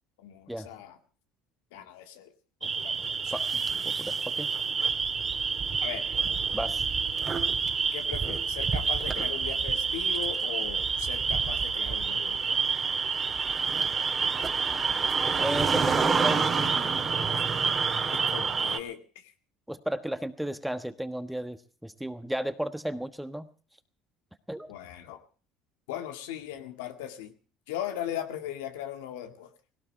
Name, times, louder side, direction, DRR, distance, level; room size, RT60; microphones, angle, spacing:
voice 1, 0.2-1.0 1.7-2.3 2.6-3.3 5.8-6.2 7.9-12.6 17.4-17.5 18.1-19.3 24.7-25.2 25.9-27.3 27.7-29.5, left 11 dB, 90° left, 7 dB, 2.0 m, -39 dB
sound 1, 2.6-18.8, right 5 dB, 30° right, 2.3 m, -28 dB
voice 2, 3.3-4.5 6.5-6.8 15.4-17.0 19.7-23.5 24.5-24.7, right 1 dB, 5° right, 10 dB, 1.3 m, -34 dB
18.0 x 17.5 x 4.6 m, 0.39 s
supercardioid pair, 95°, 0 cm